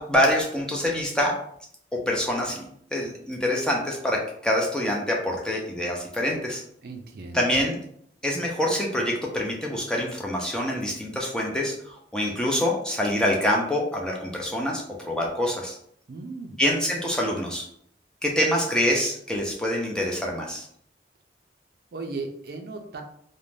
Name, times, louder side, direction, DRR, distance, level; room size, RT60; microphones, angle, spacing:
voice 1, 0.0-1.3 2.1-6.6 7.3-7.8 8.2-15.8 16.6-17.7 18.2-20.7, left 1 dB, 5° left, -2 dB, 0.4 m, -25 dB
voice 2, 6.8-7.4 16.1-16.6 21.9-23.0, right 3 dB, 55° right, 4 dB, 0.4 m, -36 dB
2.5 x 2.1 x 3.2 m, 0.67 s
head